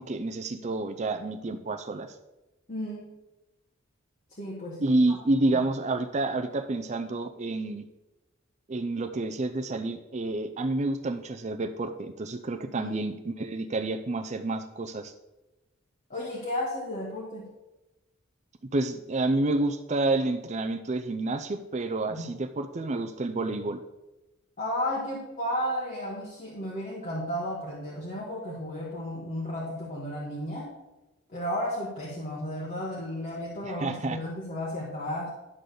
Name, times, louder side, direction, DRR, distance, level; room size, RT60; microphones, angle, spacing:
voice 1, 0.0-2.1 4.8-7.9 8.7-15.1 18.7-23.8 33.8-34.2, right 2 dB, 35° right, 7 dB, 0.5 m, -29 dB
voice 2, 2.7-3.1 4.3-5.2 5.5-5.6 12.7-12.9 16.1-17.5 22.1-22.3 24.6-30.7 31.3-35.3, left 1 dB, 40° left, -5 dB, 1.6 m, -33 dB
11.0 x 3.9 x 6.7 m, 1.0 s
head